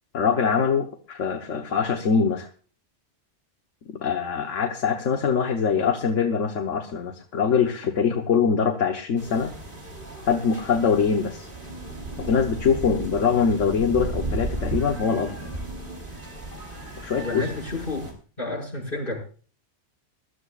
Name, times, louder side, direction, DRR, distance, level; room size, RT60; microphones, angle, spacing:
voice 1, 0.1-2.5 4.0-9.6 10.3-11.5 12.2-15.3 17.0-17.5, left 6 dB, 90° left, 5 dB, 1.4 m, -23 dB
sound 1, 9.2-18.1, right 2 dB, 45° right, 3.4 m, -34 dB
voice 2, 17.2-18.1 18.4-19.2, left 2 dB, 45° left, -4 dB, 5.9 m, -30 dB
21.5 x 12.5 x 2.4 m, 0.40 s
omnidirectional pair, 1.2 m